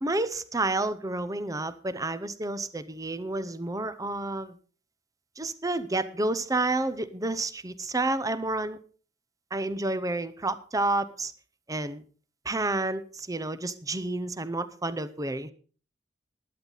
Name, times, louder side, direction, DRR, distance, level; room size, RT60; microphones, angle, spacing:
voice 1, 0.0-4.5 5.4-8.8 9.5-11.3 11.7-12.0 12.4-15.5, right 2 dB, 20° right, 14 dB, 0.7 m, -30 dB
15.5 x 11.0 x 4.0 m, 0.41 s
head